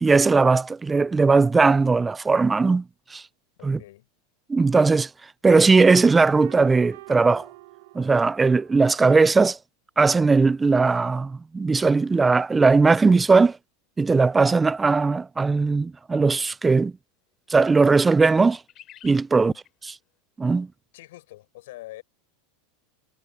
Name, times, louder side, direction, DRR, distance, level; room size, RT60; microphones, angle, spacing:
voice 1, 0.0-2.8 3.1-3.2 3.6-3.8 4.5-5.1 5.4-7.5 7.9-9.6 10.0-13.6 14.0-16.9 17.5-18.6 19.0-19.5 20.4-20.7, right 4 dB, 15° right, 0.4 m, -19 dB
voice 2, 3.6-4.1 19.3-19.6 20.9-22.0, left 17 dB, 75° left, 5.6 m, -44 dB
sound 1, 6.3-9.0, right 19 dB, 70° right, 1.2 m, -47 dB
sound 2, 16.1-16.2 16.7-16.8 17.6-17.7 18.0-19.3 19.6-19.7, left 13 dB, 40° left, 3.8 m, -51 dB
supercardioid pair, 115°, 0 cm